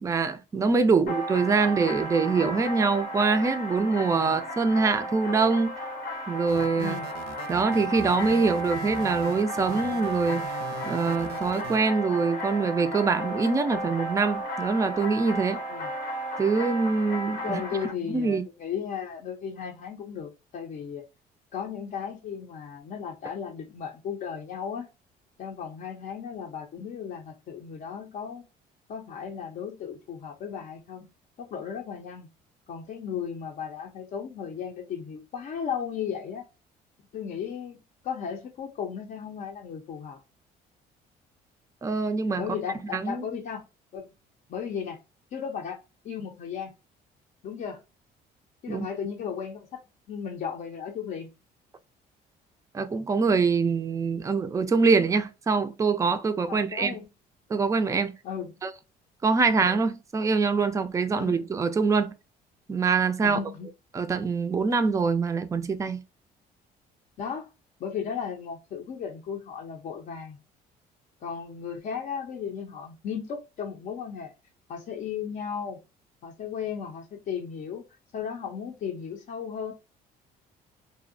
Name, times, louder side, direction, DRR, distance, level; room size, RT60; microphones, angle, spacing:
voice 1, 0.0-5.8 6.3-7.0 7.5-10.6 10.9-15.6 16.4-17.6 18.1-18.4 41.8-42.4 42.9-43.4 48.7-48.9 52.7-57.0 57.5-58.1 58.6-58.7 59.2-62.1 62.7-63.4 63.9-66.0, right 4 dB, 20° right, 0.3 m, -24 dB
sound 1, 1.1-17.9, equal, 90° left, 0.9 m, -34 dB
sound 2, 6.5-11.8, right 6 dB, 80° right, 0.5 m, -41 dB
voice 2, 6.8-7.1 15.7-15.9 17.4-21.0 21.5-24.9 25.4-28.5 28.9-31.1 31.4-32.3 32.7-36.4 37.1-37.8 38.0-40.2 42.4-43.6 43.9-44.1 44.5-45.0 45.3-45.8 46.0-46.7 47.4-47.8 48.6-49.8 50.1-51.3 56.5-57.0 58.2-58.5 59.5-59.7 61.1-61.4 63.2-63.7 67.2-67.5 67.8-70.4 71.2-74.3 74.7-75.8 76.2-77.8 78.1-79.7, left 7 dB, 55° left, 0.5 m, -35 dB
2.6 x 2.1 x 2.4 m
cardioid pair, 110°, 17 cm